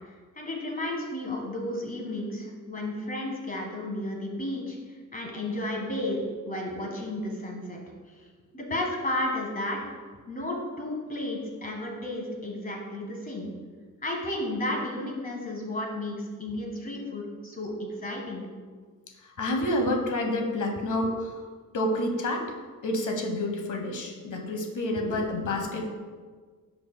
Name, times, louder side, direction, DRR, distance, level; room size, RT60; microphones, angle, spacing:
voice 1, 0.3-4.8 5.1-7.8 8.1-8.2 8.5-9.8 10.3-13.5 14.0-18.5, left 1 dB, 25° left, 0 dB, 1.5 m, -33 dB
voice 2, 19.4-21.3 21.7-22.4 22.8-25.8, left 1 dB, 65° left, 3 dB, 1.1 m, -28 dB
12.5 x 4.7 x 2.2 m, 1.5 s
wide cardioid pair, 125°, 33 cm